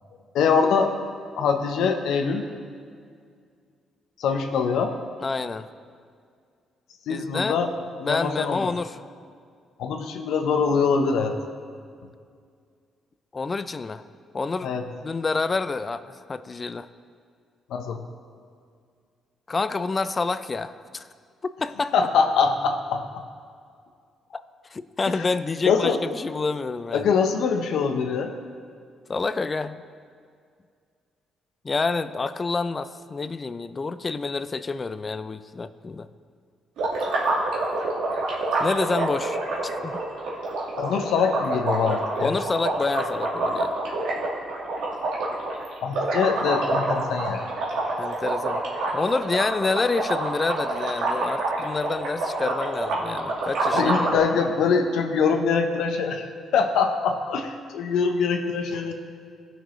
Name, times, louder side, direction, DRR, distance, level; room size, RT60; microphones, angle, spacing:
voice 1, 0.3-0.9 1.4-2.4 4.2-4.9 7.1-7.7 8.0-8.7 9.8-11.4 14.6-14.8 17.7-18.0 21.9-23.0 25.2-25.3 25.6-26.0 26.9-28.3 40.8-42.3 45.8-47.4 53.7-56.3 56.5-58.9, left 5 dB, 80° left, 5 dB, 0.8 m, -23 dB
voice 2, 5.2-5.7 7.1-7.6 8.0-9.0 13.3-14.0 14.3-14.7 15.0-16.9 19.5-21.1 21.4-21.9 24.3-24.4 24.7-27.1 29.1-29.8 31.6-36.1 38.6-40.0 42.2-43.7 48.0-48.6 48.9-54.1, left 4 dB, 30° left, 13 dB, 0.4 m, -28 dB
sound 1, 36.8-54.2, right 2 dB, 85° right, 1.7 m, -27 dB
16.5 x 6.1 x 3.1 m, 2.2 s
cardioid pair, 90°, 0 cm